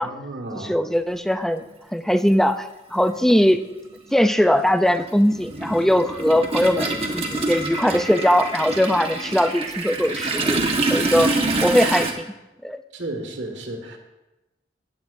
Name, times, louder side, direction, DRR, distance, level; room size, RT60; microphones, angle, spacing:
voice 1, 0.0-0.8 10.9-11.3 12.9-14.0, right 2 dB, 85° right, 4 dB, 1.7 m, -33 dB
voice 2, 0.5-1.6 1.9-3.6 4.1-12.3 12.6-12.8, equal, ahead, 9 dB, 0.4 m, -20 dB
Toilet flush, 1.6-1.7 3.0-3.2 3.5-12.1, right 2 dB, 35° right, 1.3 m, -26 dB
16.5 x 10.0 x 2.6 m, 1.0 s
head